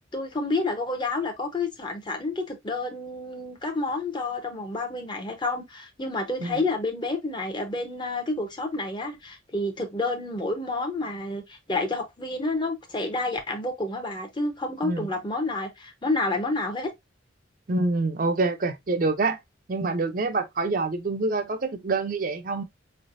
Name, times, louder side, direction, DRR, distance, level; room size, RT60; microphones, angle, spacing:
voice 1, 0.1-16.9, left 2 dB, 25° left, 0.8 m, -29 dB
voice 2, 17.7-19.4 19.7-22.6, right 3 dB, 45° right, 0.5 m, -26 dB
4.7 x 3.2 x 2.5 m
head